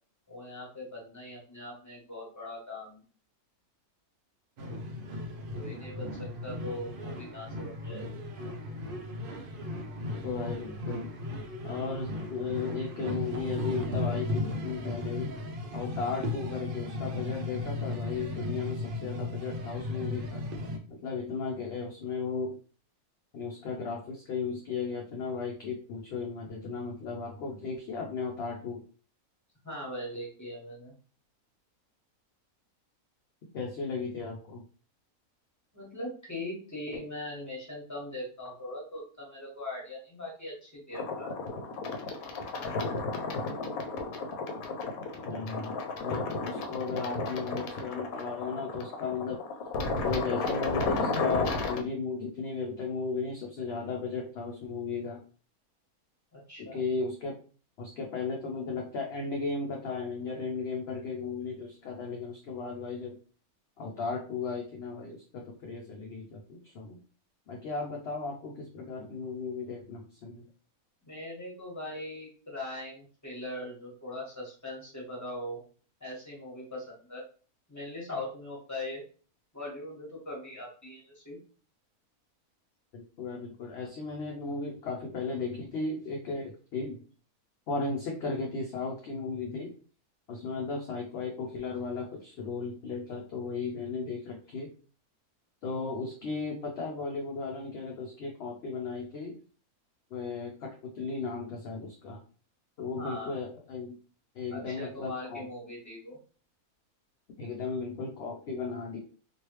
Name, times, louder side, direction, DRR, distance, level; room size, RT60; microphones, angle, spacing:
voice 1, 0.3-3.0 5.5-8.2 29.6-30.9 35.7-41.5 56.3-56.8 71.0-75.6 76.0-77.2 77.7-79.0 79.5-81.4 103.0-103.4 104.5-106.2, left 1 dB, 10° left, -3 dB, 1.2 m, -40 dB
sound 1, 4.6-20.8, left 2 dB, 65° right, 0.5 m, -36 dB
voice 2, 10.2-11.1 11.6-15.4 15.7-20.4 20.9-22.6 23.3-28.8 33.5-34.6 45.2-45.8 46.0-49.4 50.0-55.2 56.6-57.3 57.8-63.2 63.8-67.0 67.5-70.4 82.9-87.0 87.7-89.7 90.3-94.7 95.6-99.3 100.1-102.2 102.8-104.0 104.3-105.5 107.4-109.0, left 4 dB, 60° left, 0 dB, 0.7 m, -35 dB
sound 2, 40.9-51.8, left 3 dB, 75° left, 1.0 m, -33 dB
3.1 x 2.6 x 3.0 m, 0.39 s
omnidirectional pair, 1.5 m